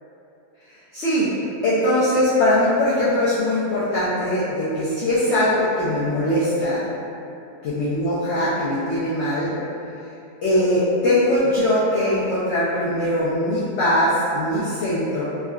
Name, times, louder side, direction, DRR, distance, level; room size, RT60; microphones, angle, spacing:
voice 1, 0.9-1.3 1.6-6.8 7.6-9.5 10.4-15.2, left 1 dB, 70° left, -10 dB, 0.6 m, -21 dB
3.6 x 2.3 x 2.2 m, 2.8 s
omnidirectional pair, 1.7 m